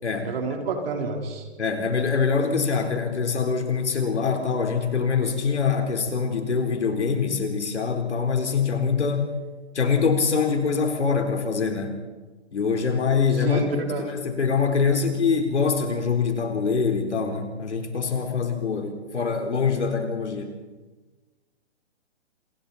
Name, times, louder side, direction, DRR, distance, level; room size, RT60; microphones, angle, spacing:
voice 1, 0.2-1.5 13.4-14.1, right 3 dB, 60° right, 2 dB, 4.1 m, -28 dB
voice 2, 1.6-9.3 9.7-12.0 12.5-13.6 13.9-20.5, left 5 dB, 85° left, 4 dB, 4.2 m, -24 dB
27.0 x 22.5 x 4.3 m, 1.2 s
hypercardioid pair, 140°, 34 cm